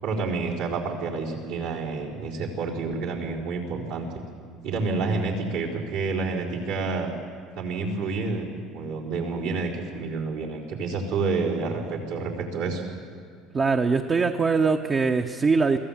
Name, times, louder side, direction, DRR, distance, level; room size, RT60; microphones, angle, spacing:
voice 1, 0.0-4.1 4.6-7.1 7.6-12.8, right 4 dB, 80° right, -4 dB, 4.3 m, -29 dB
voice 2, 13.5-15.8, right 4 dB, 35° right, 4 dB, 0.9 m, -22 dB
23.0 x 15.5 x 7.4 m, 2.3 s
hypercardioid pair, 80°, 0 cm